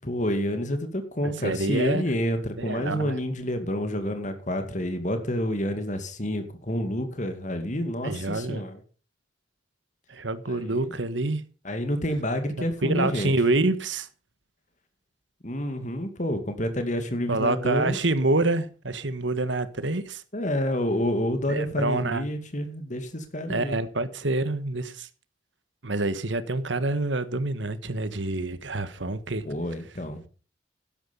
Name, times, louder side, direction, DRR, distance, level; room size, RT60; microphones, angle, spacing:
voice 1, 0.0-8.8 10.5-10.9 11.6-13.3 15.4-18.0 20.3-23.8 29.4-30.2, left 1 dB, 40° left, 2.3 m, -28 dB
voice 2, 1.2-2.0 2.6-3.2 8.0-8.6 10.1-11.4 12.8-14.1 17.3-20.2 21.5-22.3 23.5-25.1 25.8-29.4, right 2 dB, 70° right, 1.5 m, -27 dB
12.5 x 10.5 x 5.3 m
head